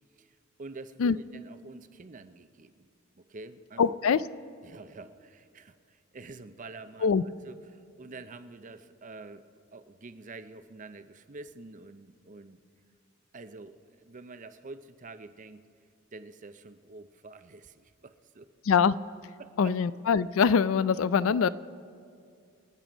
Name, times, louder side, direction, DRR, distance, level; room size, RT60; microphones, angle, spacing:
voice 1, 0.2-2.9 3.1-3.8 4.1-4.2 4.6-7.2 7.4-12.6 13.3-15.6 16.1-18.5 19.4-19.7, right 3 dB, 35° right, 11 dB, 0.6 m, -47 dB
voice 2, 3.8-4.2 7.0-7.2 18.7-18.9 19.6-21.5, left 6 dB, 65° left, 17 dB, 0.4 m, -23 dB
25.5 x 9.1 x 5.1 m, 2.3 s
head